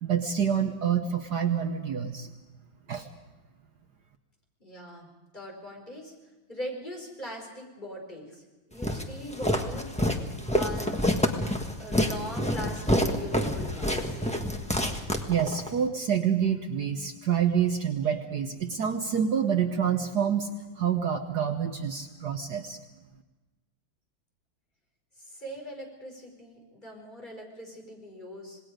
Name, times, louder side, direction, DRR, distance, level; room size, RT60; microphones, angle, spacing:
voice 1, 0.0-2.3 2.9-3.1 15.3-20.5 20.8-22.8, right 8 dB, 60° right, 6 dB, 1.4 m, -27 dB
voice 2, 4.6-6.1 6.5-9.9 10.5-11.0 11.8-14.2 25.2-28.6, equal, 20° left, 0 dB, 5.0 m, -41 dB
Walk footsteps, 8.8-15.7, equal, 5° left, 1.1 m, -27 dB
27.0 x 19.5 x 5.1 m, 1.1 s
omnidirectional pair, 2.3 m